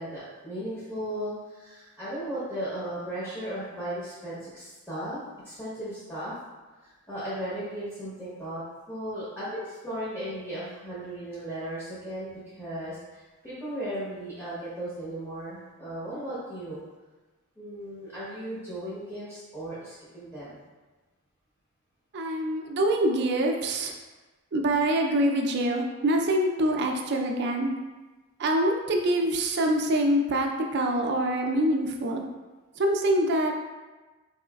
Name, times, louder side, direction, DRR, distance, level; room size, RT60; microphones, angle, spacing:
voice 1, 0.0-6.3 6.8-8.6 8.9-16.8 17.6-20.6, right 1 dB, 10° left, -11 dB, 0.9 m, -36 dB
voice 2, 22.1-23.9 24.5-27.7 28.4-32.2 32.8-33.5, right 1 dB, 50° right, 3 dB, 0.4 m, -25 dB
4.1 x 3.0 x 2.3 m, 1.2 s
head